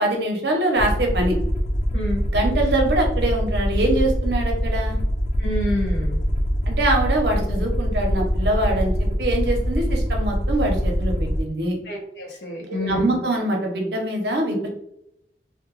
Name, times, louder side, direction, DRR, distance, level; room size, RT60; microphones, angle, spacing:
voice 1, 0.0-1.4 2.3-5.0 6.7-11.8 12.7-14.7, right 1 dB, 70° right, 1 dB, 0.7 m, -23 dB
Aircraft, 0.8-11.4, equal, 40° left, 0.4 m, -23 dB
voice 2, 1.9-2.2 5.4-6.2 11.8-13.2, left 1 dB, 75° left, -2 dB, 0.7 m, -28 dB
2.2 x 2.1 x 3.0 m, 0.77 s
head